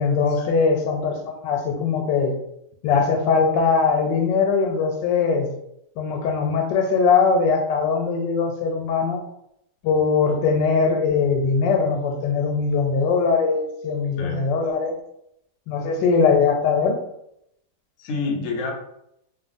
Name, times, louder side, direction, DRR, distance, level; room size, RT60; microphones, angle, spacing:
voice 1, 0.0-2.4 2.8-5.5 6.0-9.2 9.8-15.0 15.7-17.0, left 5 dB, 85° left, 3 dB, 1.2 m, -21 dB
voice 2, 14.2-14.5 18.0-18.7, left 3 dB, 65° left, 0 dB, 0.8 m, -28 dB
3.3 x 2.2 x 2.4 m, 0.78 s
omnidirectional pair, 1.9 m